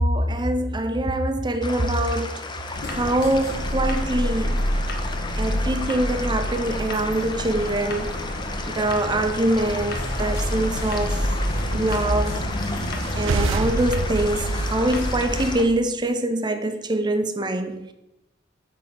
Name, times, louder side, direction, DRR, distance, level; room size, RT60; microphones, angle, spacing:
voice 1, 0.0-2.4 2.9-4.6 5.4-8.1 8.7-11.2 11.7-12.4 13.2-17.9, right 1 dB, 25° right, 0.6 m, -24 dB
sound 1, 1.6-15.6, left 3 dB, 25° left, 0.7 m, -35 dB
sound 2, 2.7-15.5, equal, 55° left, 1.3 m, -28 dB
sound 3, 12.9-15.7, right 3 dB, 80° right, 0.5 m, -27 dB
9.5 x 3.8 x 6.1 m
head